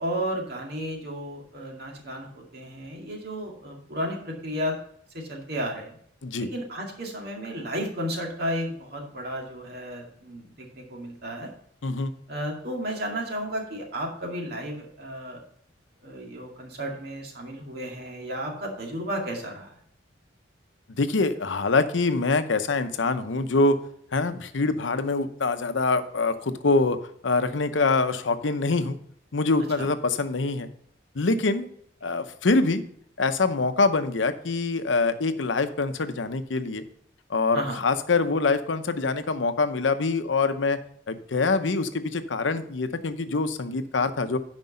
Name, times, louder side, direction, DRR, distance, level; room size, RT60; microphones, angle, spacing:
voice 1, 0.0-4.8 5.1-6.0 6.5-11.5 12.3-15.4 16.0-19.7 29.8-29.9 37.5-37.8, equal, 55° right, 0 dB, 2.2 m, -33 dB
voice 2, 11.8-12.1 21.0-23.8 24.1-27.0 27.2-29.0 29.3-30.7 31.1-31.7 32.0-32.8 33.2-36.8 37.3-40.8 41.1-44.4, left 3 dB, 85° left, 10 dB, 0.8 m, -24 dB
9.4 x 5.3 x 5.3 m, 0.65 s
head